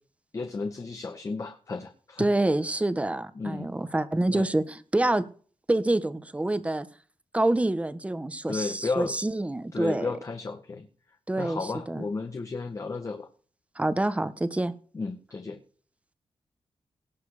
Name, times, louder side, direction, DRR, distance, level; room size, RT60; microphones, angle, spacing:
voice 1, 0.3-2.3 3.3-3.7 4.3-4.5 8.5-9.2 9.7-10.9 11.4-13.3 14.9-15.6, left 4 dB, 35° left, 1.7 m, -33 dB
voice 2, 2.2-5.2 5.7-6.9 7.3-10.1 11.3-12.0 13.7-14.7, right 2 dB, 15° right, 1.3 m, -27 dB
18.5 x 7.8 x 5.1 m
wide cardioid pair, 115°, 9 cm